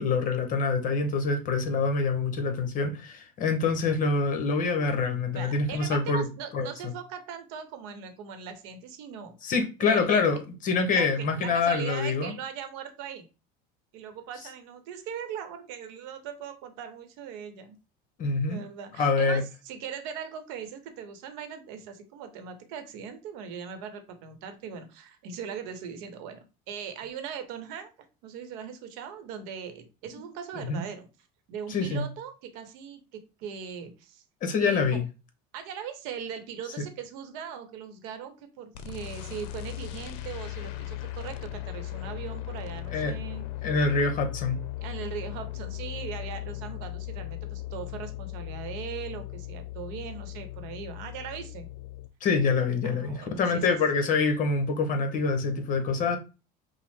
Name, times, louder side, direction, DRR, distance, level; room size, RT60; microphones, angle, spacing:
voice 1, 0.0-6.3 6.5-6.9 9.4-12.3 18.2-18.6 19.0-19.4 30.7-30.8 31.7-32.0 34.4-35.0 42.9-43.2 43.6-44.6 52.2-56.2, left 4 dB, 45° left, 1.0 m, -26 dB
voice 2, 5.3-9.5 9.8-10.2 10.9-13.2 13.9-17.8 18.5-27.9 28.2-31.1 31.5-34.2 34.6-35.0 35.5-43.5 44.8-51.7 52.8-53.8, right 7 dB, 80° right, 0.9 m, -40 dB
sound 1, 38.7-52.1, left 14 dB, 80° left, 0.6 m, -38 dB
5.5 x 2.0 x 3.6 m
supercardioid pair, 125°, 19 cm